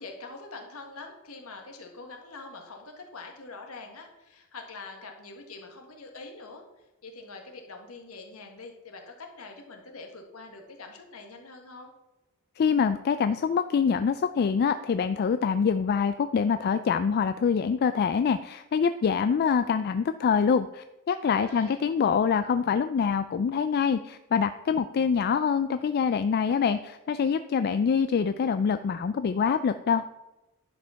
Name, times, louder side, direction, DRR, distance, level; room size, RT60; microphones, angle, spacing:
voice 1, 0.0-11.9 21.3-21.8, left 3 dB, 70° left, 3 dB, 1.7 m, -44 dB
voice 2, 12.6-30.1, left 6 dB, 45° left, 11 dB, 0.3 m, -25 dB
10.5 x 5.1 x 5.7 m, 0.98 s
head